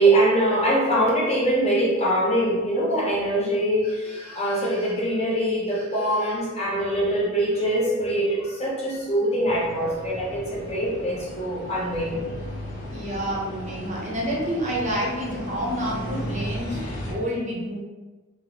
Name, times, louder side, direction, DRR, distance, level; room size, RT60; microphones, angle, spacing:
voice 1, 0.0-12.2 16.7-16.8, right 1 dB, 30° left, -5 dB, 0.7 m, -23 dB
sound 1, 9.4-17.1, equal, 75° left, 0.8 m, -35 dB
voice 2, 12.9-16.8 17.1-17.8, equal, 35° right, -4 dB, 0.7 m, -28 dB
3.1 x 2.4 x 2.9 m, 1.2 s
head